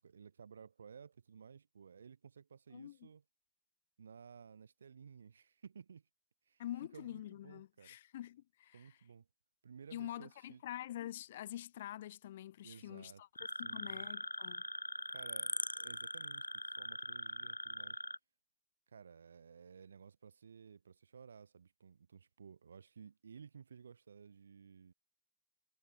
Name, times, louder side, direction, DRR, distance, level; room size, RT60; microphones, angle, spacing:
voice 1, 0.0-3.2 4.0-6.1 6.5-6.6 6.9-8.0 8.7-9.3 9.6-10.6 12.6-14.1 15.1-18.0 18.9-24.9, right 6 dB, 70° right, 2.6 m, -56 dB
voice 2, 2.7-3.1 6.6-9.0 9.9-13.3 13.6-14.6, left 13 dB, 60° left, 3.8 m, -46 dB
sound 1, 13.4-18.2, left 2 dB, 85° left, 0.4 m, -42 dB
figure-of-eight pair, 90°, 0 cm